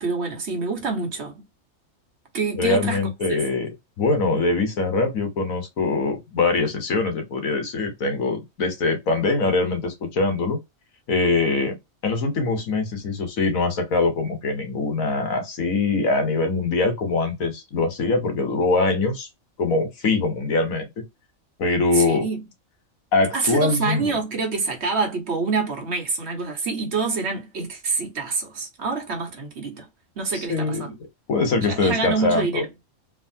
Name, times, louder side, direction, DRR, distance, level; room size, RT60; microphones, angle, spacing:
voice 1, 0.0-1.4 2.3-3.4 21.9-22.4 23.3-29.9 30.2-31.0 31.6-32.7, right 4 dB, 55° right, 1.3 m, -26 dB
voice 2, 2.6-3.7 4.0-10.6 11.1-11.8 12.0-19.3 19.6-20.9 21.6-22.3 23.1-24.1 30.3-30.8 31.3-32.6, left 3 dB, 90° left, 1.5 m, -23 dB
3.3 x 2.5 x 2.6 m
omnidirectional pair, 1.4 m